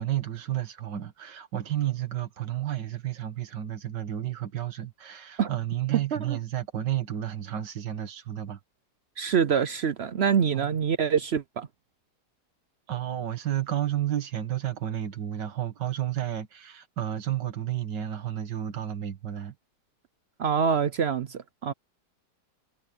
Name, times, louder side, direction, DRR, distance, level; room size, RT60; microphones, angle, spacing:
voice 1, 0.0-8.6 10.5-10.8 12.9-19.5, right 12 dB, 85° right, 2.1 m, -31 dB
voice 2, 9.2-11.7 20.4-21.7, right 7 dB, 65° right, 0.6 m, -25 dB
omnidirectional pair, 1.8 m